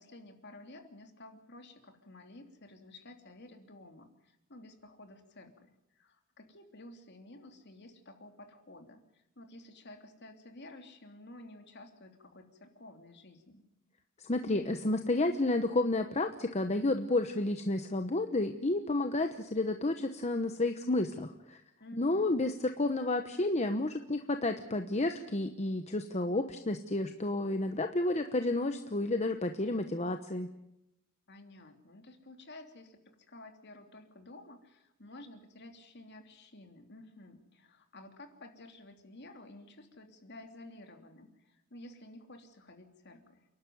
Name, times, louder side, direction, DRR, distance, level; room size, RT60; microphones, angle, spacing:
voice 1, 0.0-5.7 5.9-13.6 21.8-22.3 31.3-33.0 33.3-43.4, left 2 dB, 55° left, 5 dB, 3.1 m, -52 dB
voice 2, 14.2-21.6 21.9-30.5, left 2 dB, 30° left, 7 dB, 1.0 m, -31 dB
29.0 x 12.0 x 9.5 m, 0.86 s
head